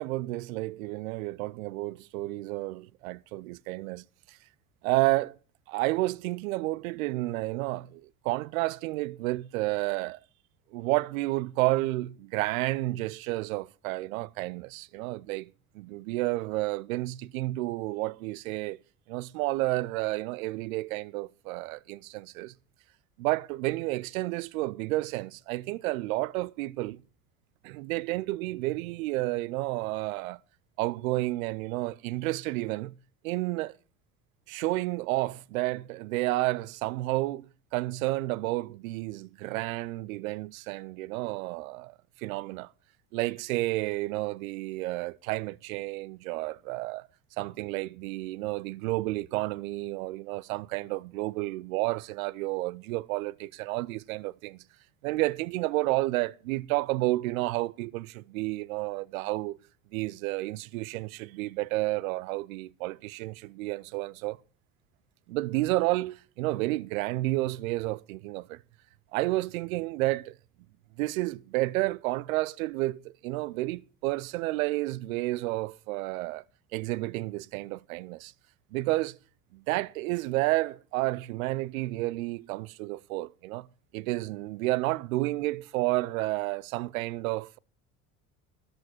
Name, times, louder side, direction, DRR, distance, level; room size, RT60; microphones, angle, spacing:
voice 1, 0.0-4.4 4.8-5.4 5.7-10.2 10.7-18.8 19.1-22.5 23.2-27.0 27.6-30.4 30.8-32.9 33.2-33.8 34.5-42.7 43.1-47.1 47.4-54.6 55.0-59.6 59.9-64.4 65.3-68.6 69.1-70.4 71.0-76.4 76.7-78.3 78.7-79.2 79.5-83.7 83.9-87.6, right 19 dB, 75° right, 0.6 m, -31 dB
13.5 x 11.5 x 4.3 m
hypercardioid pair, 65°, 41 cm